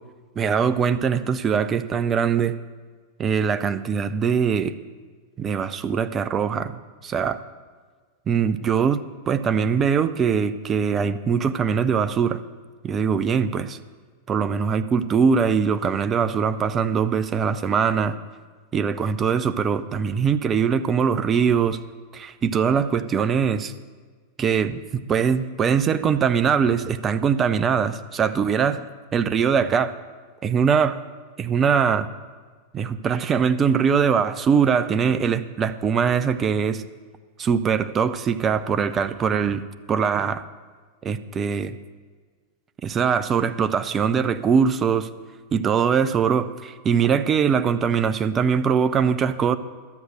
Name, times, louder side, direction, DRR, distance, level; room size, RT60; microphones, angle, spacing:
voice 1, 0.4-2.5 3.2-4.7 5.4-6.8 7.0-7.4 8.3-12.4 12.8-13.8 14.3-18.2 18.7-21.8 22.1-23.7 24.4-24.8 25.1-28.8 29.1-29.9 30.4-31.0 31.4-32.1 32.7-36.8 37.4-39.6 39.9-40.4 41.0-41.7 42.8-45.1 45.5-49.6, right 6 dB, 25° right, 11 dB, 0.6 m, -22 dB
12.0 x 7.9 x 6.4 m, 1.5 s
figure-of-eight pair, 90°, 0 cm